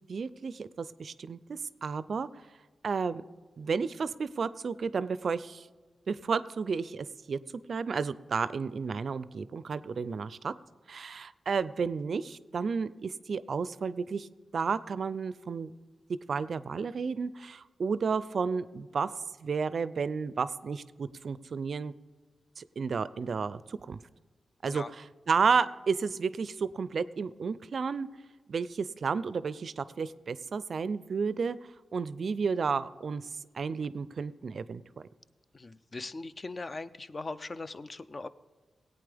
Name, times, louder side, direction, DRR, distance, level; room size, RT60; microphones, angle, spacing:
voice 1, 0.1-2.3 2.8-3.2 3.6-5.7 6.1-7.4 7.7-10.5 10.9-14.3 14.5-15.7 16.3-19.1 19.4-21.9 22.6-24.0 24.6-24.8 25.3-28.1 28.5-31.6 31.9-33.3 33.5-34.8, right 5 dB, 60° right, 16 dB, 0.4 m, -32 dB
voice 2, 35.5-38.3, left 3 dB, 35° left, 14 dB, 0.4 m, -40 dB
17.5 x 8.7 x 3.4 m, 1.3 s
cardioid pair, 85°, 0 cm